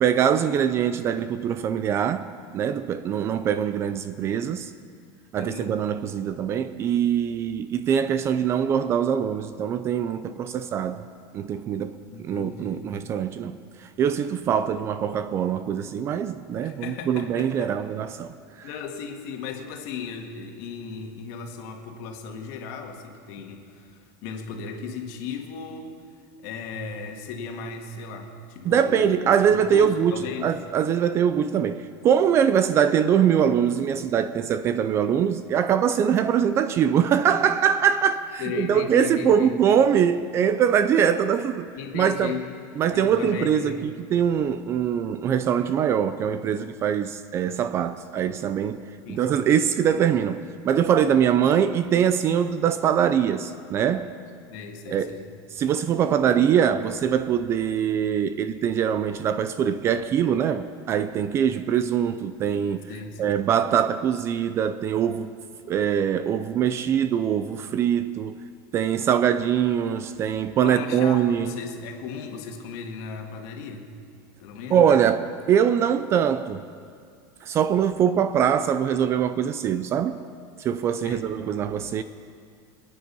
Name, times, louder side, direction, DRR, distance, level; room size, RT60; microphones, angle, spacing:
voice 1, 0.0-4.7 5.3-11.0 11.3-18.7 28.7-42.3 42.8-48.8 49.1-54.1 54.9-55.2 55.5-62.9 63.2-65.3 65.7-68.4 68.7-71.5 74.7-76.6 77.4-80.2 80.6-82.0, right 8 dB, 25° right, 0.4 m, -23 dB
voice 2, 5.4-5.7 12.1-13.0 16.6-17.7 18.6-25.9 26.4-30.5 38.4-39.5 41.8-42.4 42.9-43.8 49.1-49.4 54.5-55.3 62.9-63.4 70.6-73.9 74.4-74.8 81.0-81.3, left 6 dB, 55° left, 1.9 m, -36 dB
26.0 x 9.4 x 5.5 m
supercardioid pair, 170°, 11 cm